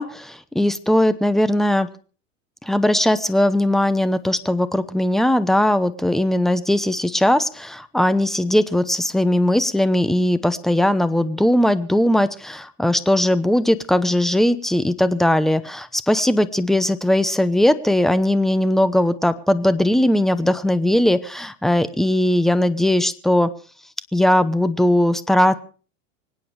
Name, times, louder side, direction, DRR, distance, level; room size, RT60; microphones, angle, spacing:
voice 1, 0.0-1.9 2.6-23.5 24.1-25.6, left 1 dB, ahead, 13 dB, 0.9 m, -19 dB
25.0 x 9.4 x 4.8 m, 0.38 s
supercardioid pair, 115°, 38 cm